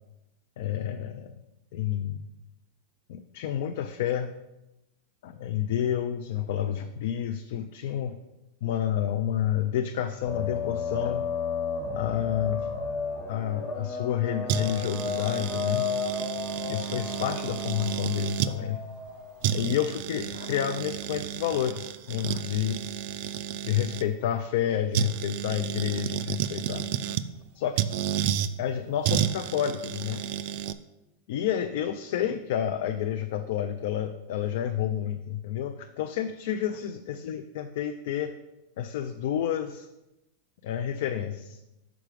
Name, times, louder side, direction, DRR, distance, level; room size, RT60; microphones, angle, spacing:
voice 1, 0.6-1.3 1.7-2.2 3.1-4.4 5.2-8.2 8.6-11.3 11.9-12.7 13.3-15.9 16.6-18.8 19.5-22.8 23.6-26.9 27.6-27.8 28.6-30.2 31.3-38.3 38.8-39.9 40.6-41.6, left 10 dB, 65° left, 7 dB, 0.4 m, -29 dB
sound 1, 10.3-19.5, left 5 dB, 25° left, 1.2 m, -33 dB
sound 2, 14.5-18.5 19.1-19.2 19.4-24.0 24.9-27.3 27.8-28.5 29.0-30.7, right 10 dB, 55° right, 0.3 m, -31 dB
6.0 x 4.8 x 5.0 m, 0.96 s
supercardioid pair, 150°, 0 cm